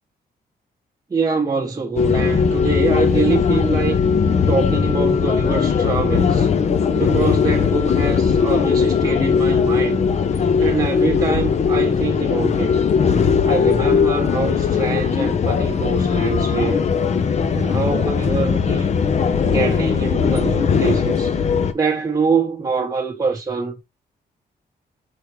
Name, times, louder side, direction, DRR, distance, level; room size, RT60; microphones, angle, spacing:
voice 1, 1.1-4.0 4.5-6.5 6.9-10.1 10.6-12.7 13.4-16.9 17.5-18.9 19.5-21.3 21.7-23.8, right 4 dB, 20° right, 0.9 m, -24 dB
sound 1, 2.0-21.7, left 6 dB, 40° left, 0.5 m, -19 dB
4.5 x 3.6 x 3.1 m
cardioid pair, 115°, 17 cm